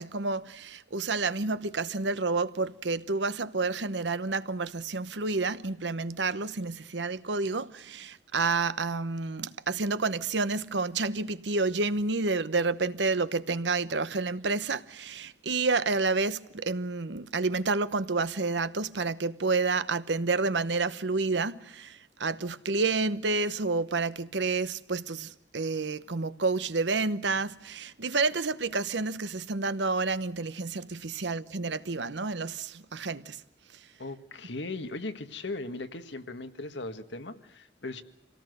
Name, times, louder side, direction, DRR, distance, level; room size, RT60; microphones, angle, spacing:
voice 1, 0.0-33.4, right 3 dB, 85° right, 1.0 m, -29 dB
voice 2, 34.0-38.0, left 2 dB, 90° left, 1.7 m, -38 dB
27.0 x 18.0 x 8.0 m
head